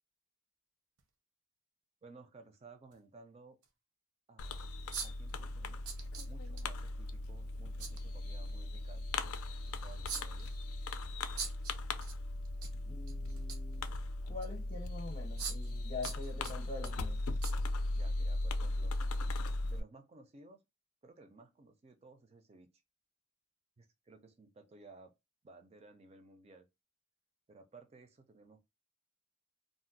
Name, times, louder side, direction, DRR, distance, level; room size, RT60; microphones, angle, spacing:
sound 1, 1.0-1.1 2.9-3.0 3.6-3.7 4.9-5.3 5.8-6.6 7.8-8.0 10.1-10.6 11.4-12.1 12.4-12.7 13.1-13.7 14.4-14.5 15.4-15.8 16.0-16.9 17.4-17.5 18.0-18.1, right 6 dB, 90° right, 0.6 m, -42 dB
voice 1, 2.0-3.6 4.3-4.7 5.0-5.9 6.3-9.4 9.8-10.5 17.9-18.9 19.7-20.6 21.0-22.7 23.8-25.1 25.4-26.7 27.5-28.6, right 3 dB, 30° right, 0.4 m, -57 dB
Fireworks, 4.4-19.8, left 2 dB, 85° left, 0.4 m, -38 dB
voice 2, 12.9-13.9 14.3-17.2, left 3 dB, 35° left, 0.6 m, -45 dB
2.5 x 2.1 x 3.9 m
head